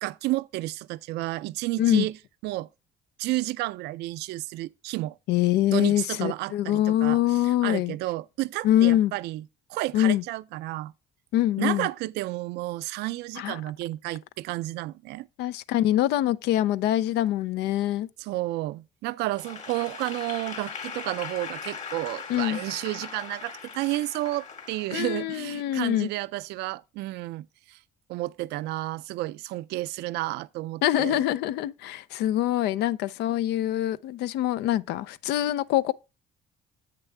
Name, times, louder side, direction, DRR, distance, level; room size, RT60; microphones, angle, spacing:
voice 1, 0.0-2.1 2.4-2.7 3.2-5.2 5.7-9.4 9.7-10.9 11.6-15.3 18.2-27.8 28.1-31.2, right 18 dB, 85° right, 0.4 m, -31 dB
voice 2, 5.3-7.9 8.6-9.1 9.9-10.2 11.3-11.9 13.4-13.6 15.4-18.1 22.3-22.6 24.9-26.1 30.8-35.9, left 13 dB, 80° left, 0.5 m, -24 dB
Applause / Crowd, 19.3-25.6, left 5 dB, 45° left, 2.7 m, -39 dB
8.2 x 6.7 x 3.3 m
cardioid pair, 110°, 17 cm